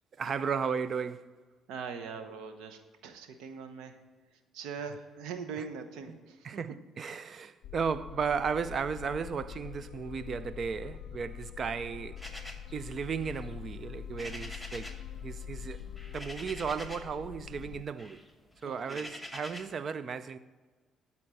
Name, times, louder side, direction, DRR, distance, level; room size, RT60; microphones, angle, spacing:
voice 1, 0.2-1.3 6.4-12.2 12.7-14.9 15.2-15.8 16.1-18.2 18.6-20.4, right 6 dB, 50° right, 0.5 m, -35 dB
voice 2, 1.7-4.0 4.3-6.5 18.6-19.1, right 6 dB, 85° right, 1.0 m, -42 dB
sound 1, 7.6-17.8, left 9 dB, 70° left, 0.4 m, -44 dB
sound 2, 12.2-15.1 15.4-17.2 17.5-19.8, left 1 dB, ahead, 1.2 m, -46 dB
12.0 x 4.4 x 7.7 m
supercardioid pair, 75°, 0 cm